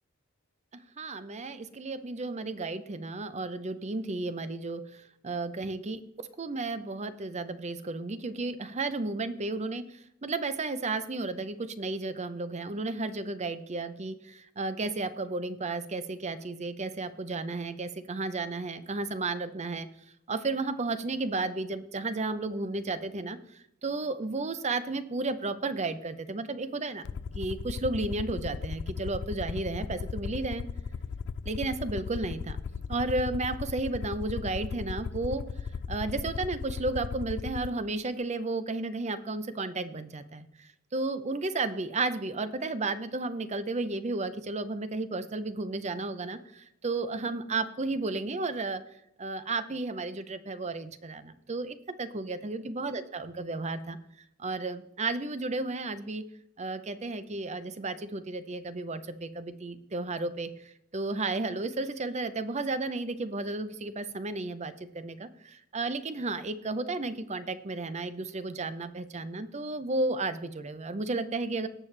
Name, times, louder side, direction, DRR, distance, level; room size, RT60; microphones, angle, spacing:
voice 1, 0.7-6.0 6.4-19.9 20.3-27.0 27.3-30.6 31.5-32.6 32.9-35.5 35.9-48.8 49.2-54.0 54.4-56.2 56.6-71.7, right 3 dB, 30° right, 12 dB, 0.7 m, -33 dB
Aircraft, 27.1-37.7, left 5 dB, 55° left, 0.4 m, -36 dB
18.5 x 6.7 x 3.3 m, 0.80 s
head